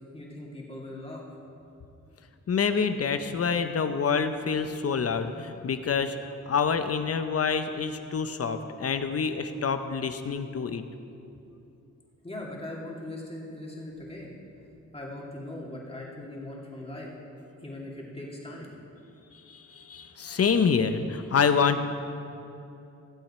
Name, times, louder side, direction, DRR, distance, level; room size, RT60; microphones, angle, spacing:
voice 1, 0.1-1.2 12.2-14.3 14.9-17.1 17.6-18.7, left 1 dB, 20° left, -3 dB, 2.5 m, -40 dB
voice 2, 2.5-6.2 6.5-10.8 19.5-21.8, left 6 dB, 50° left, 9 dB, 0.7 m, -27 dB
17.5 x 7.7 x 4.4 m, 2.7 s
cardioid pair, 95°, 31 cm